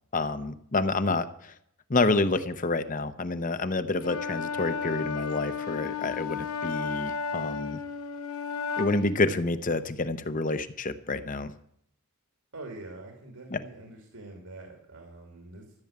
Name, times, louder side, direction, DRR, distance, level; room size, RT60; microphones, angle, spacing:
voice 1, 0.1-1.5 1.9-7.8 8.8-11.5 13.5-13.6, left 3 dB, 35° left, 11 dB, 0.8 m, -28 dB
Wind instrument woodwind instrument, 4.0-9.2, left 6 dB, 80° left, 1.3 m, -33 dB
voice 2, 12.5-15.6, right 2 dB, 80° right, 2 dB, 2.8 m, -44 dB
14.0 x 7.1 x 8.7 m, 0.70 s
head